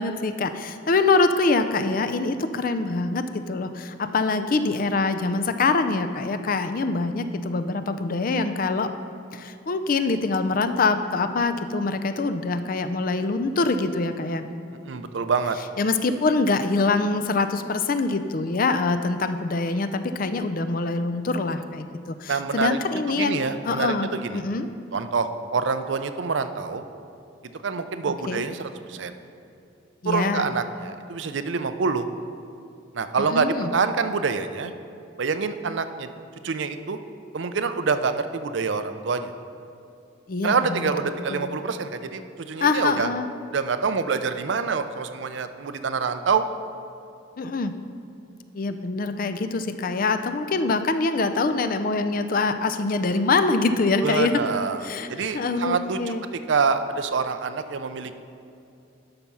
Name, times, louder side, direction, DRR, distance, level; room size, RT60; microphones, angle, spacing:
voice 1, 0.0-8.9 9.3-14.4 15.8-24.7 28.3-28.4 30.0-30.5 33.3-33.7 40.3-40.9 41.3-41.5 42.6-43.3 47.4-47.7 48.5-54.4 54.8-55.1 55.3-56.2, left 3 dB, 45° left, 9 dB, 0.5 m, -24 dB
voice 2, 14.9-15.6 22.3-22.8 23.2-23.9 24.2-24.4 24.9-26.8 27.6-29.1 30.1-32.1 32.9-34.7 35.2-36.1 36.4-37.0 37.3-39.3 40.4-42.2 42.5-43.1 43.5-46.4 54.0-54.8 55.1-56.0 56.5-58.1, right 5 dB, 65° right, 10 dB, 0.5 m, -26 dB
12.0 x 5.8 x 5.5 m, 2.6 s
head